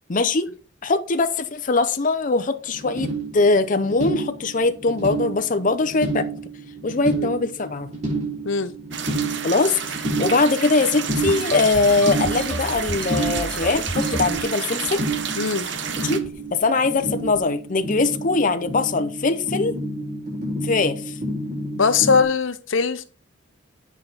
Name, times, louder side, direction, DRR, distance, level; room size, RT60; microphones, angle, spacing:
voice 1, 0.1-0.5 0.8-6.3 6.8-7.9 9.4-15.0 16.0-16.2 16.5-19.7 20.6-21.2, left 3 dB, 45° left, 0.7 m, -21 dB
sound 1, 2.7-22.2, right 2 dB, 40° right, 4.5 m, -30 dB
sound 2, 8.9-16.2, right 7 dB, 65° right, 1.1 m, -30 dB
sound 3, 11.1-14.4 14.9-15.4 15.6-15.9 16.2-16.5 17.1-17.4, equal, 5° left, 2.6 m, -33 dB
voice 2, 15.4-15.7 21.7-23.1, left 5 dB, 85° left, 0.8 m, -21 dB
8.8 x 6.1 x 4.0 m
head